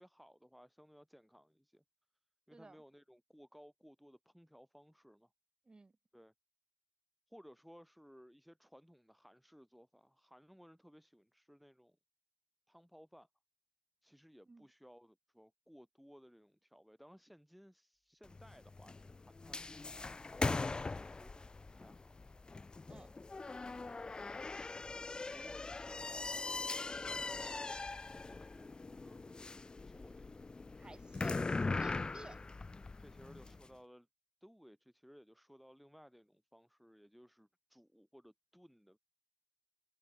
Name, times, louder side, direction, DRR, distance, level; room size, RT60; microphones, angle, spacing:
voice 1, 0.0-1.8 2.5-5.3 6.1-6.3 7.3-12.0 12.7-13.3 14.0-19.9 20.4-22.1 25.3-30.5 31.9-32.2 33.0-34.1 34.4-39.0, equal, ahead, 2.7 m, -60 dB
voice 2, 2.5-2.8 5.7-5.9 14.5-14.7 22.9-23.1 30.8-32.4, right 3 dB, 20° right, 5.6 m, -56 dB
sound 1, 18.2-33.6, left 3 dB, 20° left, 0.6 m, -41 dB
supercardioid pair, 65°, 4 cm